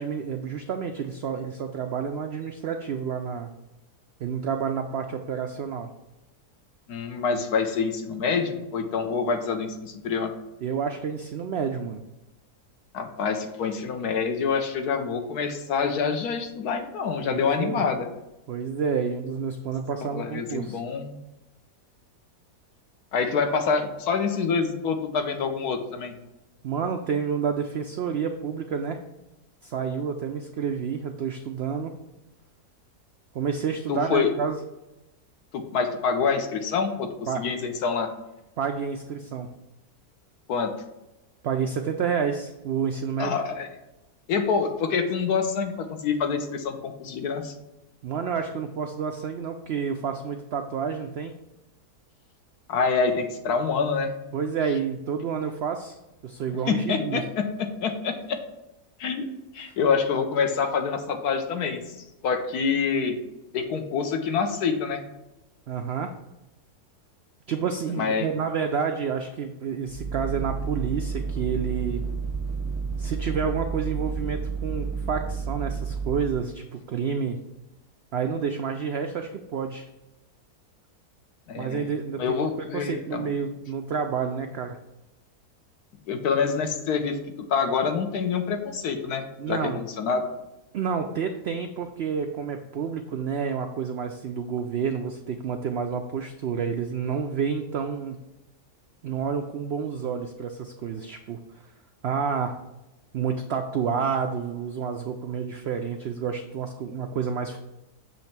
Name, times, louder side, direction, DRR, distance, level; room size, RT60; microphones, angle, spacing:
voice 1, 0.0-3.5 4.2-5.9 10.6-12.0 17.3-17.8 18.5-20.8 26.6-29.0 29.6-31.9 33.3-34.6 37.3-37.4 38.6-39.5 41.4-43.4 48.0-51.3 54.3-56.0 56.2-57.2 65.7-66.1 67.5-72.0 73.0-77.4 78.1-79.9 81.6-82.5 82.7-84.8 89.4-89.8 90.7-98.2 99.0-101.4 102.0-102.5 103.1-107.6, right 6 dB, 85° right, 5 dB, 0.5 m, -29 dB
voice 2, 6.9-10.3 12.9-18.1 20.0-21.2 23.1-26.1 33.9-34.3 35.5-37.1 37.3-38.1 40.5-40.7 43.2-43.7 44.3-47.5 52.7-54.2 56.7-58.4 59.0-59.3 59.5-61.8 62.2-63.2 63.5-65.0 68.0-68.3 81.5-83.3 86.1-87.2 87.5-90.3, left 5 dB, 75° left, 6 dB, 1.3 m, -26 dB
sound 1, 69.9-76.4, right 5 dB, 20° right, 0.4 m, -31 dB
7.3 x 3.2 x 5.8 m, 0.97 s
omnidirectional pair, 1.7 m